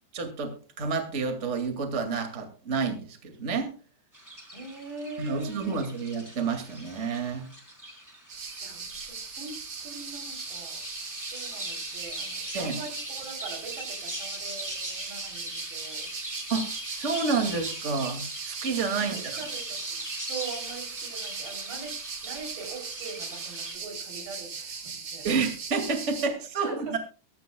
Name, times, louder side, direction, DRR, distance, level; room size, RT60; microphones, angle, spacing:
voice 1, 0.1-3.7 5.2-7.5 12.5-12.8 16.5-19.1 25.2-27.0, right 4 dB, 25° right, 5 dB, 1.7 m, -29 dB
sound 1, 4.1-23.8, equal, 5° right, 3.1 m, -40 dB
voice 2, 4.5-5.8 8.6-10.8 11.3-16.1 19.0-25.3 26.6-27.0, right 4 dB, 90° right, 3 dB, 5.6 m, -42 dB
sound 2, 8.3-26.3, right 5 dB, 45° right, 1.5 m, -39 dB
23.0 x 12.0 x 2.3 m, 0.36 s
omnidirectional pair, 4.7 m